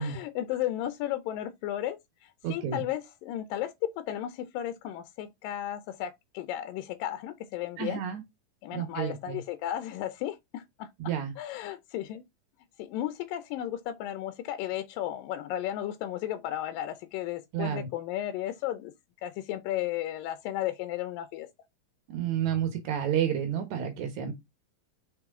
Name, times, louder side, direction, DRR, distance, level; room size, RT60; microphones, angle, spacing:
voice 1, 0.0-8.0 8.6-12.2 12.8-18.9 19.2-21.5, left 12 dB, 80° left, 2.3 m, -34 dB
voice 2, 2.4-2.8 7.8-8.2 8.7-9.4 11.0-11.3 17.5-17.9 22.1-24.3, right 9 dB, 65° right, 2.3 m, -30 dB
6.2 x 5.4 x 3.6 m
omnidirectional pair, 4.0 m